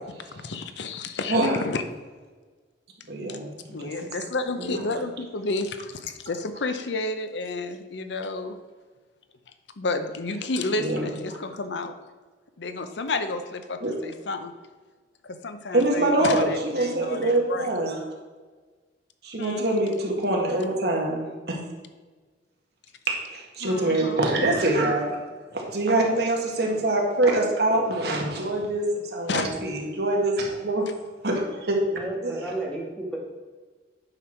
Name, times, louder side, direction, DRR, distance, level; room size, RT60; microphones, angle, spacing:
voice 1, 0.3-1.8 3.3-3.4 3.7-8.6 9.8-11.9 12.6-14.5 15.2-17.7 19.4-19.7 23.6-24.2 29.3-29.5, left 3 dB, 80° left, 9 dB, 0.7 m, -31 dB
voice 2, 1.3-1.6 3.1-4.1 4.6-4.8 10.8-11.0 13.8-13.9 15.7-18.0 19.2-21.6 23.1-25.2 25.5-30.9 31.2-31.8 32.2-32.3, right 2 dB, 60° right, 0 dB, 1.6 m, -24 dB
voice 3, 31.9-33.2, right 1 dB, 5° left, -3 dB, 1.7 m, -32 dB
8.8 x 6.1 x 4.4 m, 1.4 s
head